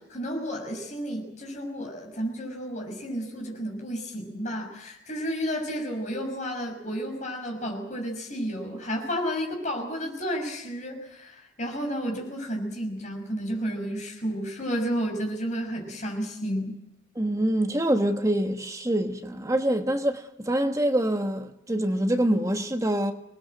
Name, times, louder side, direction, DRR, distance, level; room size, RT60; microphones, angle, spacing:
voice 1, 0.0-16.8, equal, 40° left, 6.2 m, -32 dB
voice 2, 17.1-23.1, right 1 dB, 15° right, 1.3 m, -25 dB
26.5 x 20.0 x 7.8 m
head